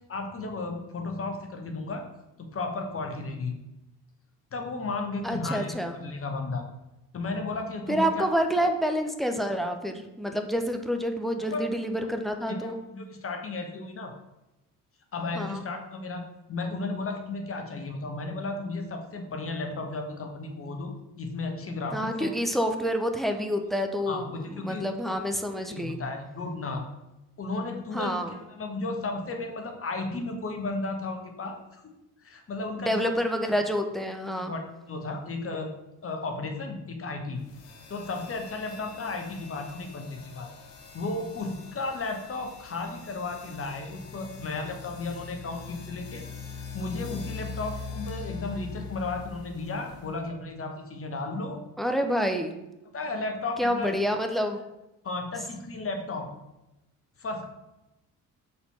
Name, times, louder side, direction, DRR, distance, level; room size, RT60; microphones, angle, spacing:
voice 1, 0.1-2.1 2.4-3.6 4.5-6.6 7.1-8.3 8.6-8.7 11.4-11.8 12.4-14.1 15.1-22.3 24.1-25.2 25.5-26.8 27.4-31.9 32.2-33.1 33.4-33.5 34.4-34.6 34.9-35.7 36.0-37.4 37.9-40.5 40.9-51.6 52.9-53.9 55.0-56.3 57.2-57.4, left 3 dB, 30° left, 4 dB, 1.0 m, -34 dB
voice 2, 5.2-5.9 7.9-12.8 15.4-15.6 21.9-24.2 24.6-26.0 27.9-28.3 32.8-34.5 51.8-52.5 53.6-54.6, equal, ahead, 5 dB, 0.5 m, -28 dB
sound 1, 37.4-50.3, left 5 dB, 75° left, 1.0 m, -42 dB
4.3 x 4.2 x 5.6 m, 0.95 s
figure-of-eight pair, 50°, 48 cm